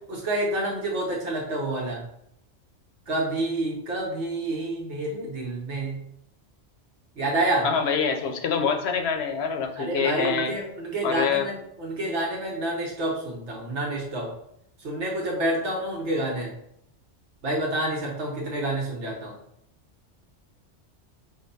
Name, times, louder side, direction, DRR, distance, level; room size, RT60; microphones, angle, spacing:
voice 1, 0.1-2.0 3.1-6.0 7.2-7.7 9.8-14.3 14.8-16.5 17.4-19.4, right 1 dB, 75° right, -3 dB, 1.2 m, -28 dB
voice 2, 7.6-10.5 11.0-11.5, left 6 dB, 65° left, 5 dB, 0.8 m, -25 dB
5.1 x 2.2 x 4.0 m, 0.76 s
omnidirectional pair, 1.2 m